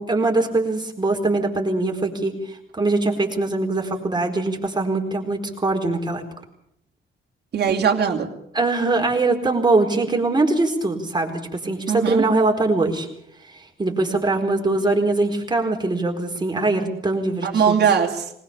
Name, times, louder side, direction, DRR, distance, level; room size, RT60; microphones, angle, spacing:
voice 1, 0.0-6.2 8.5-13.1 13.5-17.8, right 2 dB, 20° right, 3 dB, 4.4 m, -22 dB
voice 2, 7.5-8.3 11.9-12.2 17.4-18.3, right 7 dB, 55° right, 0 dB, 3.0 m, -20 dB
21.0 x 19.0 x 7.0 m, 0.73 s
cardioid pair, 90°, 20 cm